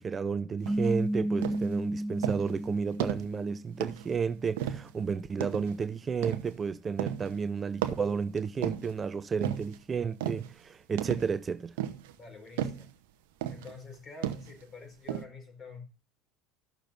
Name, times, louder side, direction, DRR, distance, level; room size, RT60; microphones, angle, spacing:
voice 1, 0.0-11.8, right 5 dB, 30° right, 0.5 m, -32 dB
sound 1, 0.7-4.0, right 1 dB, 15° right, 1.1 m, -33 dB
sound 2, 0.7-0.9 1.4-1.7 2.2-2.6 3.0-3.4 3.8-4.1 4.6-5.0 5.4-5.8 6.2-6.6 7.0-7.4 7.8-9.0 9.4-9.8 10.2-10.5 11.0-11.4 11.8-12.2 12.6-12.9 13.4-13.7 14.2-14.6 15.1-15.2, right 11 dB, 80° right, 0.8 m, -34 dB
voice 2, 12.2-12.9 13.5-15.8, left 4 dB, 35° left, 5.0 m, -47 dB
15.5 x 6.5 x 2.6 m
hypercardioid pair, 85°, 0 cm